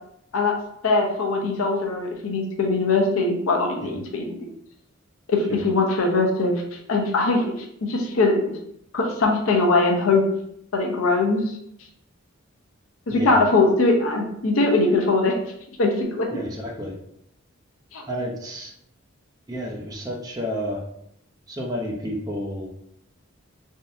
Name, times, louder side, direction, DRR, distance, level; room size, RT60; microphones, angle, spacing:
voice 1, 0.8-4.5 5.3-6.5 6.9-7.5 7.9-8.5 8.9-10.2 10.7-11.6 13.1-15.3 15.8-16.4 17.9-18.0, left 3 dB, 85° left, 1 dB, 0.7 m, -21 dB
voice 2, 16.3-16.9 18.1-18.7 19.5-20.8 21.5-22.7, equal, 20° right, -1 dB, 0.6 m, -30 dB
3.6 x 2.6 x 2.6 m, 0.74 s
head